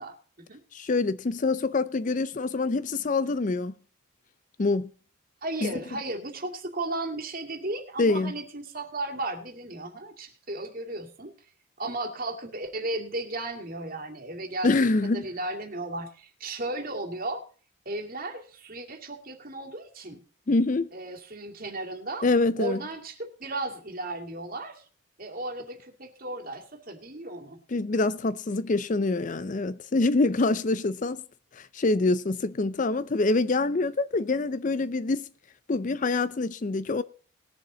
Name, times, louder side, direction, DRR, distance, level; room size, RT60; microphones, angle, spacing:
voice 1, 0.0-0.6 5.4-11.3 11.8-17.4 17.9-20.2 20.9-22.3 22.6-24.8 25.2-27.6, right 2 dB, 40° right, 2.3 m, -35 dB
voice 2, 0.7-3.7 4.6-4.9 5.6-5.7 8.0-8.3 14.6-15.3 20.5-20.9 22.2-22.8 27.7-31.2 31.5-35.3 35.7-37.0, left 3 dB, 35° left, 0.4 m, -25 dB
20.0 x 7.2 x 3.9 m
head